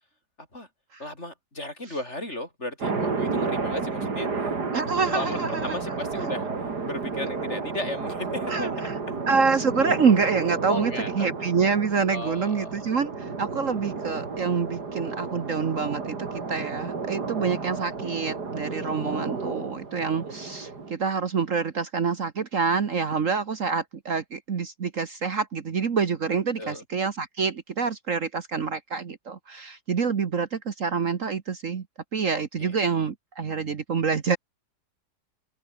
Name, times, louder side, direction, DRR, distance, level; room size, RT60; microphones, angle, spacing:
voice 1, 1.0-6.5 6.9-9.2 10.7-11.3 12.1-12.9 18.7-20.0 26.6-26.8 32.6-32.8, left 1 dB, 40° left, 8.2 m, -36 dB
sound 1, 2.8-20.9, right 4 dB, 70° right, 3.7 m, -32 dB
voice 2, 4.7-5.7 8.5-8.7 9.3-31.8 32.1-34.4, right 5 dB, 50° right, 1.6 m, -26 dB
open air
omnidirectional pair, 1.8 m